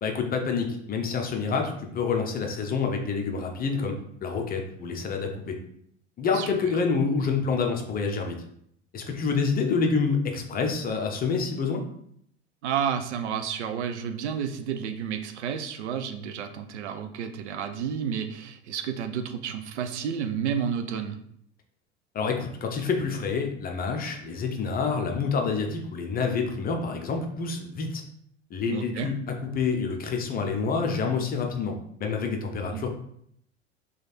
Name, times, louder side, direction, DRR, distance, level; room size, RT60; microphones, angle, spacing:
voice 1, 0.0-3.9 4.2-5.6 6.2-8.4 8.9-11.8 22.1-28.0 28.5-32.9, left 5 dB, 25° left, 3 dB, 0.6 m, -27 dB
voice 2, 12.6-21.2 28.7-29.1 32.7-32.9, right 8 dB, 70° right, 8 dB, 0.5 m, -31 dB
3.1 x 2.4 x 4.1 m, 0.69 s
figure-of-eight pair, 75°, 36 cm